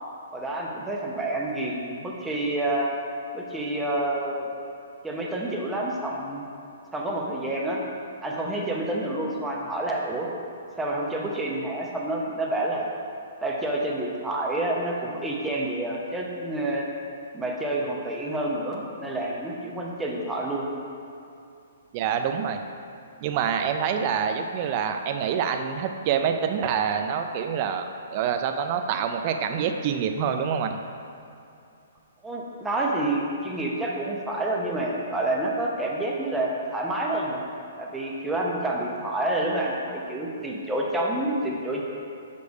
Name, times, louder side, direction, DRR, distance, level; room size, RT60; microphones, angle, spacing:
voice 1, 0.3-2.9 3.3-4.5 5.0-6.4 6.9-7.8 8.2-10.3 10.8-12.9 13.4-16.9 17.3-20.7 32.2-37.4 37.8-41.8, right 1 dB, 10° right, -2 dB, 0.8 m, -28 dB
voice 2, 21.9-22.6 23.2-30.8, right 7 dB, 40° right, 6 dB, 0.5 m, -26 dB
6.7 x 3.3 x 5.3 m, 2.7 s
hypercardioid pair, 145°, 0 cm